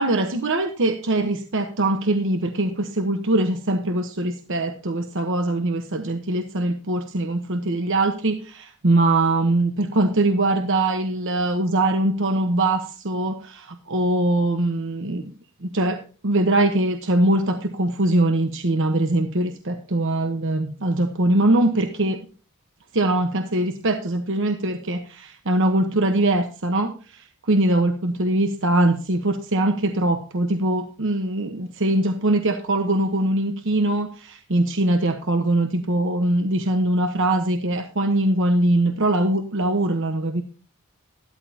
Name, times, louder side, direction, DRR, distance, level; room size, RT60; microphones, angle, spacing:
voice 1, 0.0-15.2 15.6-22.2 22.9-40.4, right 2 dB, 60° right, 6 dB, 1.1 m, -22 dB
13.0 x 13.0 x 2.8 m, 0.38 s
head